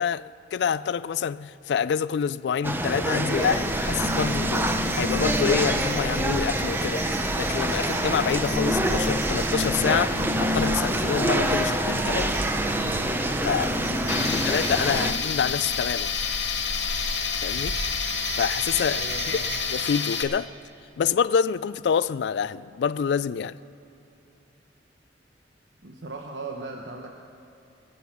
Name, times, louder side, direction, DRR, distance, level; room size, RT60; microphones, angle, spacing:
voice 1, 0.0-4.7 4.9-7.0 7.4-12.4 13.4-13.7 14.1-16.1 17.4-17.8 18.4-19.0 19.3-19.4 19.7-20.5 21.0-23.6, left 7 dB, 65° left, 0.3 m, -27 dB
sound 1, 2.6-15.1, right 1 dB, 10° right, 0.6 m, -26 dB
sound 2, 3.2-19.6, right 2 dB, 60° right, 1.5 m, -35 dB
voice 2, 13.8-14.5 18.9-19.6 25.8-27.1, right 3 dB, 80° right, 1.0 m, -38 dB
Tools, 14.1-20.2, left 7 dB, 80° left, 1.2 m, -29 dB
22.0 x 8.0 x 5.8 m
head